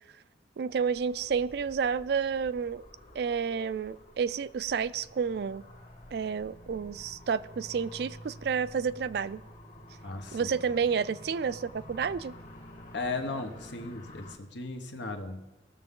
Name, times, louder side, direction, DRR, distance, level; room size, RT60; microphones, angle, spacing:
voice 1, 0.6-2.8 3.1-5.6 6.1-9.4 10.3-12.4, right 6 dB, 60° right, 0.3 m, -30 dB
sound 1, 0.7-14.4, equal, 45° left, 1.6 m, -50 dB
voice 2, 10.0-10.6 12.9-15.5, left 3 dB, 85° left, 1.2 m, -36 dB
18.0 x 6.9 x 3.7 m
head